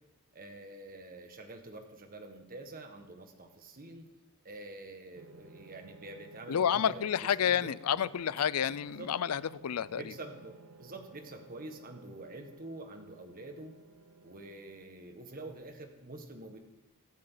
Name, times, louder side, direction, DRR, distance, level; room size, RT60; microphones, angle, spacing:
voice 1, 0.3-4.0 4.4-7.7 9.0-9.1 9.9-13.7 14.2-16.6, right 2 dB, 40° right, 5 dB, 1.6 m, -47 dB
sound 1, 5.1-14.9, right 3 dB, 70° right, 0.7 m, -55 dB
voice 2, 6.5-10.0, left 8 dB, 90° left, 19 dB, 0.4 m, -30 dB
23.5 x 9.1 x 4.0 m, 0.99 s
head